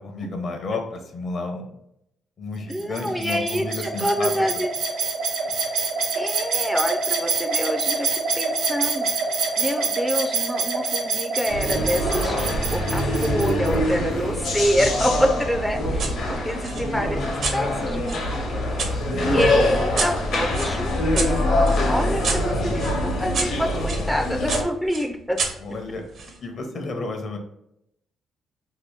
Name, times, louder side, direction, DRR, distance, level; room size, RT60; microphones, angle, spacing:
voice 1, 0.0-1.7 2.4-4.3 17.8-17.9 19.0-19.8 22.3-23.4 23.9-24.0 25.6-27.4, left 3 dB, 55° left, 4 dB, 0.6 m, -32 dB
voice 2, 2.7-4.7 6.1-9.3 9.6-21.4 21.9-25.4, equal, 5° left, 3 dB, 0.3 m, -27 dB
sound 1, 2.7-13.7, right 4 dB, 80° right, 1.1 m, -26 dB
sound 2, 11.5-24.6, left 1 dB, 75° left, 1.0 m, -24 dB
sound 3, 16.0-16.2 16.6-18.9 19.4-24.0 24.5-26.4, right 4 dB, 60° right, 0.7 m, -31 dB
2.8 x 2.5 x 3.4 m, 0.78 s
cardioid pair, 90°, 0 cm